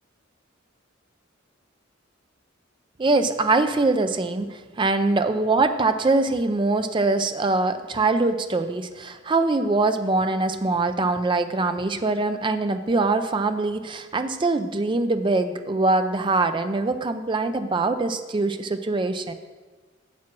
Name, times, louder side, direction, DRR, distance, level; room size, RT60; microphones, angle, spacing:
voice 1, 3.0-19.3, right 3 dB, 25° right, 9 dB, 0.4 m, -23 dB
7.5 x 7.3 x 6.0 m, 1.4 s
head